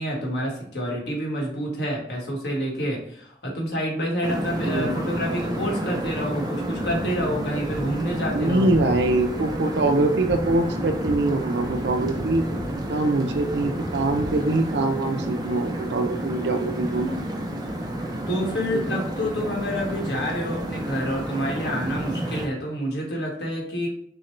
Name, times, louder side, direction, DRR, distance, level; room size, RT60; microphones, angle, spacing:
voice 1, 0.0-8.8 18.3-23.9, equal, 70° left, -2 dB, 1.4 m, -28 dB
sound 1, 4.2-22.5, right 1 dB, 25° right, 0.5 m, -30 dB
voice 2, 4.7-5.0 8.3-12.4 12.9-17.2 18.7-19.0, right 2 dB, 75° right, 6 dB, 0.5 m, -23 dB
6.1 x 2.2 x 3.2 m, 0.66 s
head